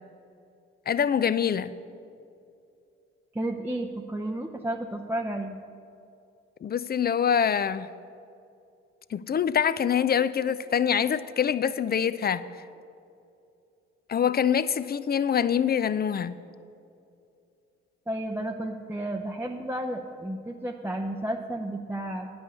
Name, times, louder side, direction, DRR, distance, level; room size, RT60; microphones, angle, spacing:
voice 1, 0.9-1.7 6.6-7.9 9.1-12.4 14.1-16.3, left 8 dB, 30° left, 15 dB, 0.5 m, -25 dB
voice 2, 3.3-5.6 18.1-22.3, right 1 dB, 5° right, 1 dB, 0.6 m, -32 dB
9.6 x 5.6 x 8.2 m, 2.5 s
hypercardioid pair, 45°, 31 cm